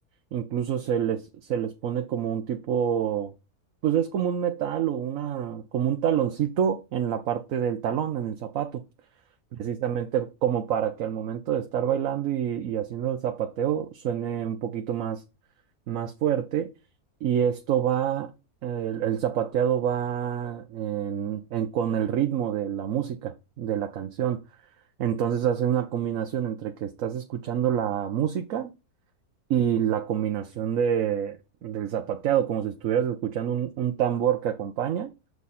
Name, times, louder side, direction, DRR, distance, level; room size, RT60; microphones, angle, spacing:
voice 1, 0.3-3.3 3.8-8.8 9.6-15.2 15.9-16.7 17.2-18.3 18.6-24.4 25.0-28.7 29.5-35.1, right 9 dB, 65° right, 1.1 m, -27 dB
6.9 x 4.8 x 4.2 m
omnidirectional pair, 1.6 m